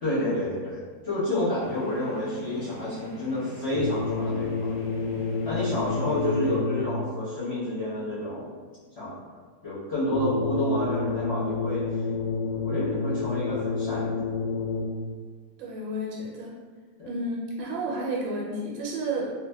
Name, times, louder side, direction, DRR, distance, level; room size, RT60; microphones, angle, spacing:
voice 1, 0.0-4.7 5.4-8.5 9.0-9.1 9.6-11.8 12.6-14.3 17.0-17.1, left 1 dB, 45° left, -11 dB, 1.0 m, -29 dB
sound 1, 1.6-6.6, equal, 70° left, 1.2 m, -45 dB
sound 2, 3.7-7.1 10.1-15.1, left 4 dB, 90° left, 1.4 m, -29 dB
voice 2, 15.6-16.5 17.1-19.3, right 1 dB, 90° right, -3 dB, 1.4 m, -31 dB
2.9 x 2.5 x 2.2 m, 1.5 s
omnidirectional pair, 2.0 m